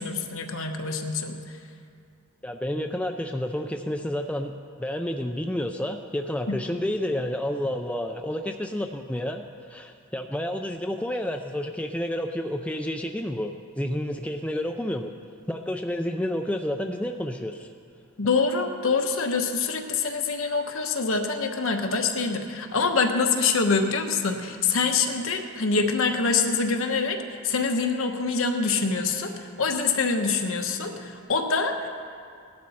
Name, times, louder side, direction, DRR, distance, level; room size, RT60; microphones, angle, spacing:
voice 1, 0.0-1.6 18.2-27.2 27.4-29.3 29.6-31.9, left 4 dB, 65° left, 4 dB, 1.1 m, -25 dB
voice 2, 2.4-4.5 4.8-15.1 15.5-17.7, left 1 dB, 5° left, 4 dB, 0.4 m, -30 dB
17.0 x 12.0 x 4.2 m, 2.4 s
head